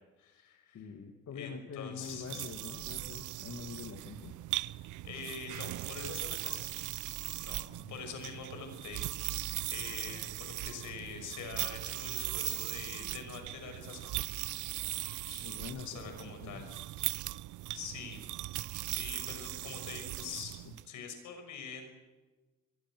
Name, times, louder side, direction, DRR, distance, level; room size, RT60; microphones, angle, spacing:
voice 1, 0.2-0.8 1.3-2.5 5.0-6.7 7.4-7.6 7.9-14.1 15.2-15.5 15.7-16.7 17.7-18.2 19.0-20.5 20.8-21.9, left 5 dB, 80° left, 6 dB, 6.2 m, -45 dB
voice 2, 0.7-4.3 7.7-8.0 15.4-15.9 16.2-16.8 20.7-20.8, left 6 dB, 60° left, 4 dB, 2.4 m, -45 dB
sound 1, 2.0-20.8, right 16 dB, 80° right, 0.6 m, -39 dB
24.5 x 23.0 x 6.3 m, 1.2 s
cardioid pair, 90°, 30 cm